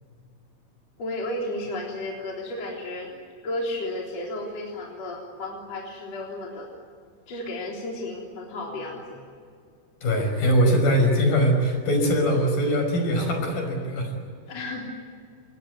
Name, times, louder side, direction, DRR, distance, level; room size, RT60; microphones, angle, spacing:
voice 1, 1.0-3.1 3.4-6.7 7.3-9.2 14.5-14.9, left 1 dB, 40° left, -2 dB, 4.5 m, -33 dB
voice 2, 10.0-14.1, equal, 60° left, 3 dB, 7.2 m, -22 dB
28.0 x 20.0 x 9.5 m, 2.2 s
omnidirectional pair, 4.7 m